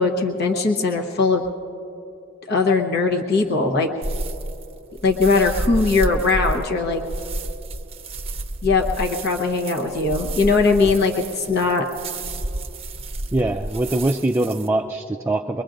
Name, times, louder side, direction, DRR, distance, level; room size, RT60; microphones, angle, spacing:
voice 1, 0.0-1.4 2.5-3.9 5.0-7.0 8.6-11.9, left 4 dB, 55° left, 1 dB, 1.0 m, -20 dB
sound 1, 4.0-14.7, right 1 dB, 30° right, 0.7 m, -30 dB
voice 2, 13.3-15.6, right 2 dB, 15° right, 3 dB, 0.4 m, -22 dB
24.0 x 22.5 x 2.6 m, 2.9 s
head